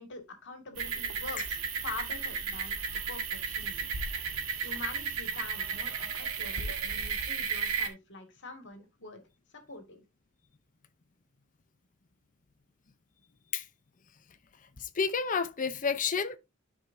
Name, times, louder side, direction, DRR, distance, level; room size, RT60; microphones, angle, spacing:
voice 1, 0.0-2.8 3.1-3.9 4.6-9.2 9.5-10.0, left 3 dB, 55° left, 2.1 m, -45 dB
sound 1, 0.8-7.9, right 6 dB, 75° right, 1.7 m, -34 dB
voice 2, 15.0-16.4, left 5 dB, 35° left, 0.6 m, -29 dB
12.5 x 5.0 x 2.7 m
head